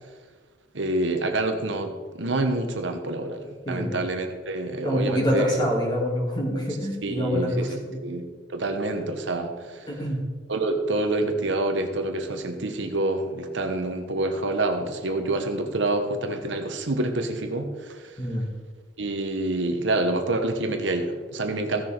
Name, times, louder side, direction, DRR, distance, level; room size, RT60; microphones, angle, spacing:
voice 1, 0.7-5.4 7.0-8.2 8.5-9.9 10.5-18.1 19.0-21.8, right 2 dB, 75° right, 5 dB, 1.2 m, -27 dB
voice 2, 3.7-4.0 4.8-8.0 9.9-10.2 18.2-18.5, equal, 25° left, -2 dB, 2.6 m, -26 dB
15.0 x 6.5 x 4.5 m, 1.5 s
head